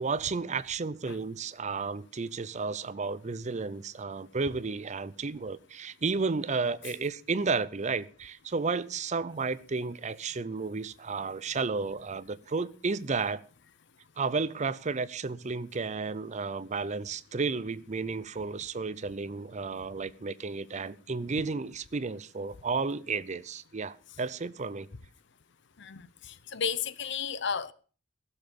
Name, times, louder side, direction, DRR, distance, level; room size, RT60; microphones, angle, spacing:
voice 1, 0.0-13.4 14.2-24.9, right 4 dB, 35° right, 0.6 m, -32 dB
voice 2, 25.8-27.7, left 6 dB, 60° left, 0.7 m, -33 dB
16.0 x 7.2 x 6.7 m
head